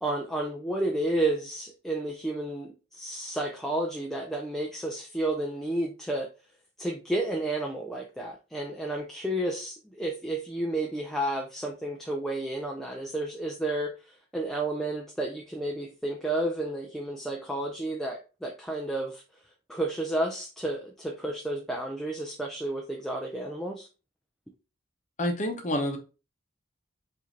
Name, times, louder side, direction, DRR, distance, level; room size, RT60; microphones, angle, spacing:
voice 1, 0.0-6.3 6.8-19.2 19.7-23.9, right 1 dB, ahead, 1 dB, 0.4 m, -31 dB
voice 2, 25.2-26.0, left 1 dB, 35° left, 4 dB, 0.8 m, -28 dB
4.9 x 2.7 x 3.1 m, 0.32 s
head